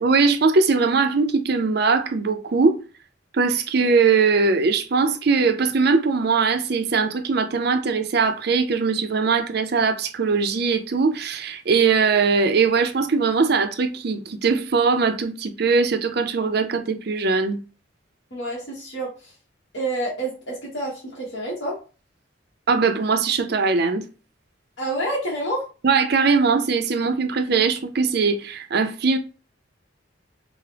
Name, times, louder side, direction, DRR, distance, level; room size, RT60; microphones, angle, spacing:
voice 1, 0.0-2.8 3.3-17.6 22.7-24.0 25.8-29.2, right 4 dB, 55° right, 0.5 m, -20 dB
voice 2, 18.3-19.3 19.7-21.8 24.8-25.6, right 1 dB, 60° left, 1.2 m, -28 dB
4.6 x 2.1 x 3.3 m
head